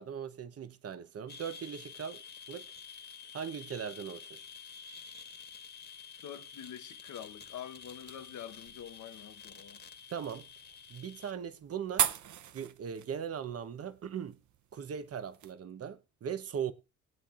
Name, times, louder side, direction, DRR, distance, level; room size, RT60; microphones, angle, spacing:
voice 1, 0.0-2.2 2.5-2.7 3.3-4.5 10.1-10.5 10.9-12.1 12.5-14.4 14.7-16.7, right 8 dB, 50° right, 1.0 m, -39 dB
sound 1, 1.3-11.3, left 6 dB, 35° left, 1.6 m, -50 dB
voice 2, 6.2-9.8, left 10 dB, 75° left, 1.1 m, -46 dB
sound 2, 7.1-15.5, right 10 dB, 75° right, 0.8 m, -40 dB
20.5 x 8.6 x 2.5 m
cardioid pair, 100°, 30 cm